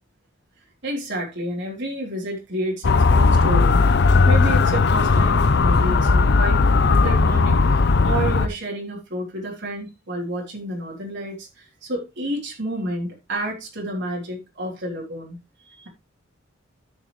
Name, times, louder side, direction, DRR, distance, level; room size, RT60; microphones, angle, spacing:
voice 1, 0.8-3.8 4.1-15.4 15.7-15.9, right 1 dB, 60° right, 3.3 m, -30 dB
Motor vehicle (road) / Siren, 2.8-8.5, left 4 dB, 55° left, 0.6 m, -17 dB
13.0 x 6.5 x 3.2 m
head